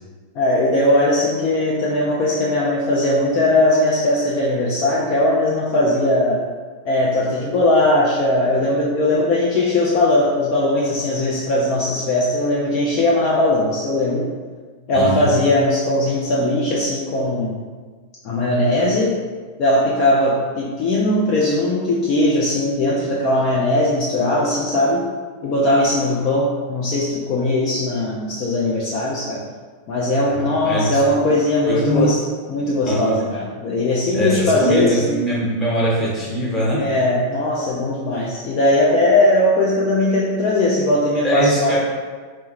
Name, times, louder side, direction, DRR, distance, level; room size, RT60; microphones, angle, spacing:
voice 1, 0.3-6.4 6.8-14.3 14.9-17.6 18.2-19.2 19.6-25.1 25.4-29.4 29.9-32.2 32.5-35.2 36.8-41.8, left 1 dB, 40° left, -4 dB, 0.4 m, -19 dB
voice 2, 14.9-15.3 30.4-31.3 31.6-32.1 32.8-33.2 34.1-36.8 41.2-41.8, right 1 dB, 15° left, -6 dB, 1.2 m, -21 dB
4.4 x 2.1 x 3.0 m, 1.5 s
figure-of-eight pair, 90°, 0 cm